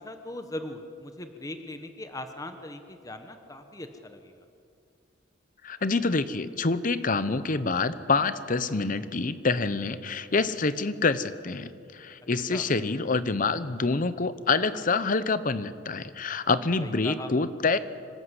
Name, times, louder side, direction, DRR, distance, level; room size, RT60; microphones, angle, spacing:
voice 1, 0.0-4.4 12.5-12.7 16.8-17.3, left 1 dB, 20° left, 7 dB, 1.1 m, -40 dB
voice 2, 5.6-17.8, left 3 dB, 45° left, 14 dB, 0.8 m, -27 dB
26.0 x 13.0 x 8.2 m, 2.4 s
head